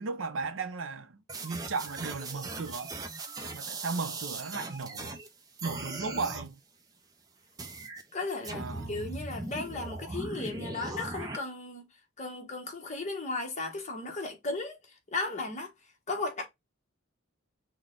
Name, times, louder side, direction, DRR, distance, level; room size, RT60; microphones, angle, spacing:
voice 1, 0.0-2.9 3.5-5.2 5.6-6.6 8.5-9.1, right 4 dB, 65° right, 0.6 m, -36 dB
sound 1, 1.3-5.3 5.6-6.5 7.6-8.0 8.4-11.4, right 2 dB, 15° right, 0.6 m, -39 dB
voice 2, 8.1-11.8 12.2-14.8 15.1-15.7 16.1-16.5, left 3 dB, 35° left, 1.1 m, -35 dB
6.0 x 2.2 x 3.7 m
head